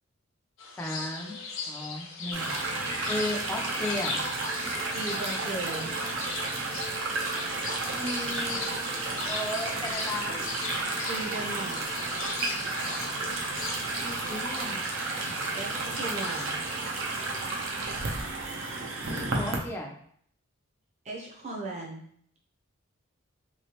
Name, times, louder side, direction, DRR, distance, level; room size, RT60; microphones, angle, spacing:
sound 1, 0.6-16.5, left 4 dB, 70° left, 0.6 m, -39 dB
voice 1, 0.8-1.4 1.7-2.6 3.1-4.2 8.0-10.4 14.0-14.8 19.0-19.9, left 1 dB, 10° left, -1 dB, 0.4 m, -35 dB
sound 2, 2.3-19.6, right 3 dB, 65° right, 0.6 m, -32 dB
sound 3, 3.1-14.6, right 1 dB, 90° right, 1.1 m, -49 dB
voice 2, 4.9-5.9 11.1-11.9 15.5-15.7 16.0-16.8 21.0-22.0, right 2 dB, 30° right, -2 dB, 0.6 m, -37 dB
3.3 x 3.1 x 2.9 m, 0.63 s
head